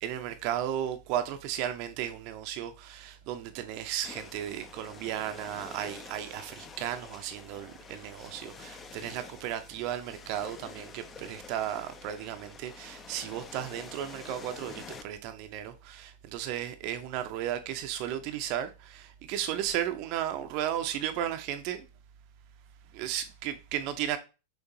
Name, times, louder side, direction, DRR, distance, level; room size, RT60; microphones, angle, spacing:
voice 1, 0.0-21.9 22.9-24.2, right 11 dB, 45° right, 0.5 m, -34 dB
sound 1, 4.0-15.0, left 5 dB, 20° left, 0.4 m, -48 dB
6.1 x 2.5 x 2.7 m
figure-of-eight pair, 90°, 0 cm